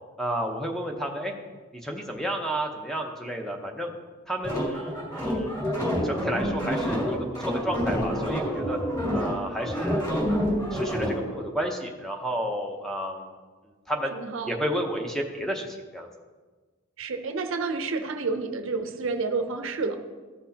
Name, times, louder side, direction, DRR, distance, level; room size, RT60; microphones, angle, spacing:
voice 1, 0.2-1.3 1.8-3.9 4.3-5.6 6.0-7.2 7.4-8.8 9.1-10.4 10.7-13.3 13.9-14.1 14.5-16.1, equal, ahead, 2 dB, 0.7 m, -31 dB
sound 1, 4.4-11.2, equal, 15° left, 2.4 m, -27 dB
voice 2, 14.1-14.6 17.0-20.0, right 4 dB, 70° right, 7 dB, 0.6 m, -30 dB
14.0 x 6.0 x 2.8 m, 1.4 s
head